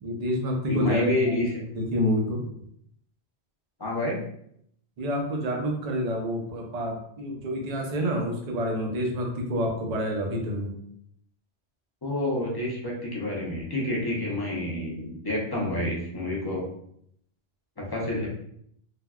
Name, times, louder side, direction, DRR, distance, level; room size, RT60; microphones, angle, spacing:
voice 1, 0.0-1.1 1.7-2.4 5.0-10.7, equal, 45° right, 1 dB, 0.6 m, -28 dB
voice 2, 0.7-1.5 3.8-4.2 12.0-16.6 17.9-18.3, left 1 dB, 25° left, -4 dB, 0.6 m, -28 dB
3.4 x 2.2 x 2.3 m, 0.70 s
omnidirectional pair, 1.1 m